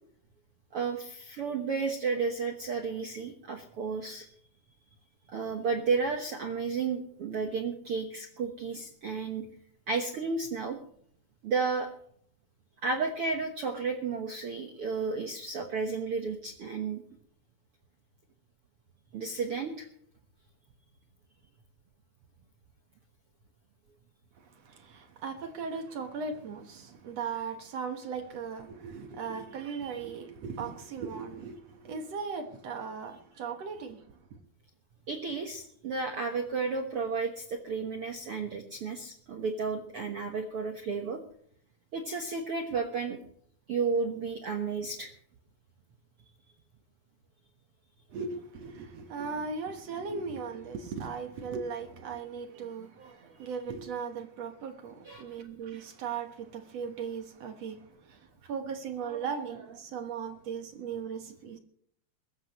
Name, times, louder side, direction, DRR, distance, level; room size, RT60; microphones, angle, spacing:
voice 1, 0.7-4.3 5.3-9.5 9.9-10.8 11.4-11.9 12.8-17.0 19.1-19.8 35.1-41.2 41.9-43.2 43.7-45.1 55.0-55.4, right 4 dB, 75° right, 1.3 m, -32 dB
voice 2, 24.4-34.4 48.1-61.6, right 5 dB, 60° right, 1.8 m, -38 dB
22.0 x 13.5 x 3.1 m
omnidirectional pair, 4.5 m